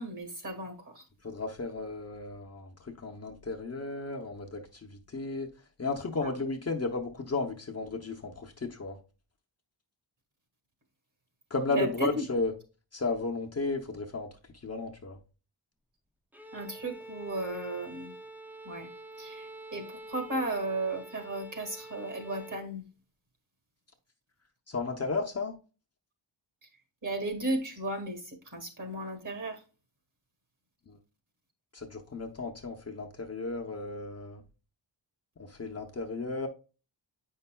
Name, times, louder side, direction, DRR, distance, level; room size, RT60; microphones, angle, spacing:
voice 1, 0.0-1.1 6.2-6.3 11.7-12.2 16.5-18.1 18.6-18.9 19.2-22.8 27.0-29.6, right 2 dB, 40° right, 1.8 m, -35 dB
voice 2, 1.2-5.5 5.8-9.0 11.5-12.5 12.9-14.3 14.6-15.2 24.7-25.6 30.9-31.0 31.7-34.4 35.4-36.5, left 3 dB, 30° left, 0.7 m, -34 dB
Bowed string instrument, 16.3-22.7, right 1 dB, 5° right, 0.4 m, -47 dB
8.6 x 5.5 x 2.2 m
wide cardioid pair, 145°, 47 cm